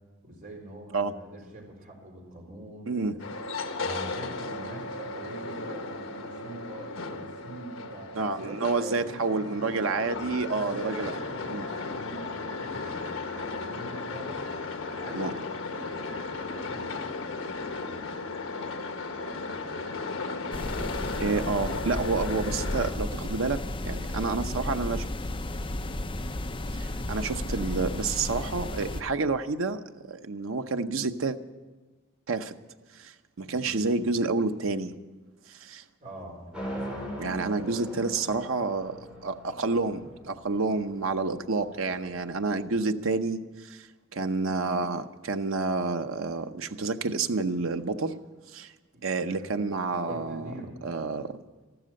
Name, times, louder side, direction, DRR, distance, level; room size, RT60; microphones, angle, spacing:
voice 1, 0.2-3.2 3.8-9.8 10.5-14.5 15.0-15.4 15.7-17.2 20.8-23.4 33.4-33.8 36.0-37.0 41.8-42.2 48.9-50.9, right 1 dB, 45° right, 4.2 m, -44 dB
sound 1, 3.2-22.9, left 3 dB, 75° left, 1.2 m, -35 dB
voice 2, 8.1-11.1 11.5-11.7 15.1-15.3 21.2-25.1 26.7-31.4 32.3-32.5 32.9-35.0 35.5-35.8 37.2-43.9 44.1-48.2 48.5-48.7 49.0-50.5 50.8-51.4, right 3 dB, 80° right, 0.8 m, -29 dB
sound 2, 20.5-29.0, left 1 dB, 25° left, 0.7 m, -33 dB
sound 3, 36.5-42.6, equal, 5° right, 3.9 m, -40 dB
14.0 x 13.0 x 7.7 m
head